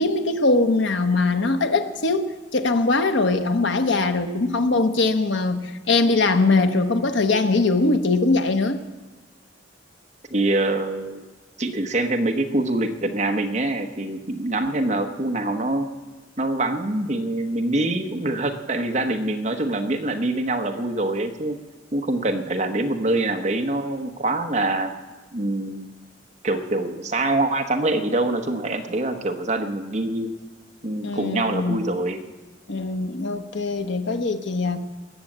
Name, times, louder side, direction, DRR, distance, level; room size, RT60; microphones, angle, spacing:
voice 1, 0.0-8.8 31.0-31.8 32.7-34.8, left 3 dB, 80° left, 7 dB, 1.1 m, -21 dB
voice 2, 10.3-11.2 11.6-15.9 16.4-21.6 21.9-24.9 25.3-25.9 26.4-30.3 30.8-32.2, right 2 dB, 40° right, 4 dB, 1.2 m, -24 dB
19.5 x 7.8 x 7.4 m, 1.2 s
head